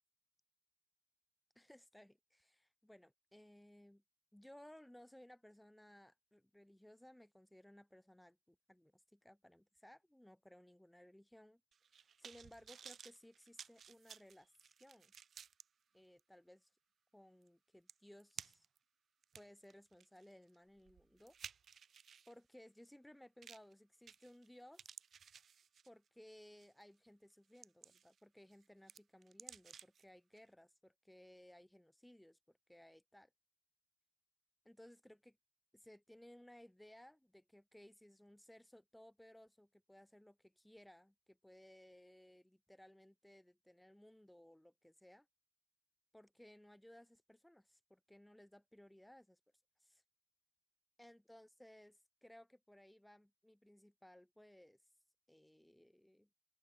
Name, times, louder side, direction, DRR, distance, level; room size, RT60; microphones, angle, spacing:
voice 1, 1.5-4.0 4.3-11.6 11.9-15.1 15.9-16.8 17.1-18.7 19.3-21.4 21.8-22.0 22.3-25.0 25.9-33.3 34.6-35.4 35.7-45.3 46.1-49.4 49.8-50.0 51.0-54.9 55.3-56.3, left 1 dB, 5° left, 0.7 m, -61 dB
sound 1, 11.7-15.6 16.2-16.3 17.5-17.6 17.9-18.8 19.2-22.3 23.4-23.7 24.1-24.5 24.7-26.1 26.6-26.8 27.3-28.2 28.5-30.0 30.4-30.5, right 7 dB, 50° right, 0.6 m, -56 dB
open air
supercardioid pair, 80°, 0 cm